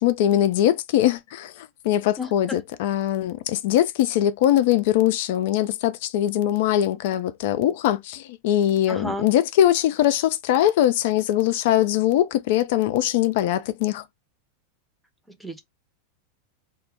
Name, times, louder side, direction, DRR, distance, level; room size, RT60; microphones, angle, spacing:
voice 1, 0.0-14.0, left 12 dB, 60° left, 0.4 m, -21 dB
voice 2, 2.2-2.6 8.9-9.3 15.3-15.6, left 1 dB, ahead, 0.7 m, -32 dB
2.1 x 2.1 x 3.6 m
figure-of-eight pair, 90°, 0 cm